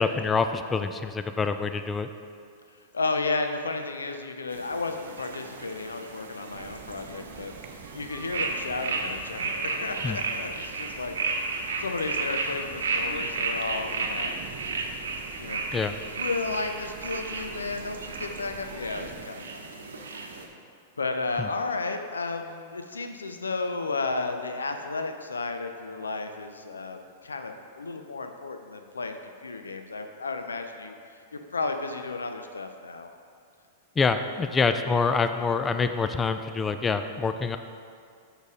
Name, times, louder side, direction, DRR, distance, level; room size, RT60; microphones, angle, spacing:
voice 1, 0.0-2.1 10.0-10.2 15.7-16.0 21.4-21.5 34.0-37.6, left 4 dB, 20° left, 9 dB, 0.3 m, -26 dB
voice 2, 2.9-7.5 7.9-14.3 15.4-15.6 16.2-19.6 20.1-20.3 21.0-30.9 31.3-33.1, left 3 dB, 90° left, 6 dB, 0.5 m, -33 dB
sound 1, 4.5-20.5, right 3 dB, 80° right, 0.8 m, -33 dB
sound 2, 6.5-19.3, right 8 dB, 45° right, 0.6 m, -46 dB
7.1 x 6.4 x 3.7 m, 2.2 s
hypercardioid pair, 105°, 0 cm